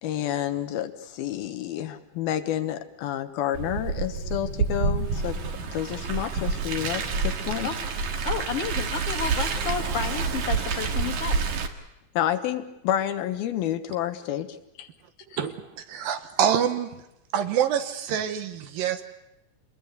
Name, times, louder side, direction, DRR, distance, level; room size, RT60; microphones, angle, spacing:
voice 1, 0.0-5.4 5.7-7.7 12.1-14.9, left 11 dB, 80° left, 9 dB, 3.0 m, -29 dB
Car, 3.5-11.7, right 4 dB, 55° right, 2.8 m, -28 dB
voice 2, 8.2-11.4, left 6 dB, 45° left, 5 dB, 2.5 m, -31 dB
voice 3, 15.4-16.9 17.3-19.0, right 9 dB, 70° right, 9 dB, 2.8 m, -26 dB
27.0 x 20.5 x 8.3 m, 0.88 s
omnidirectional pair, 4.4 m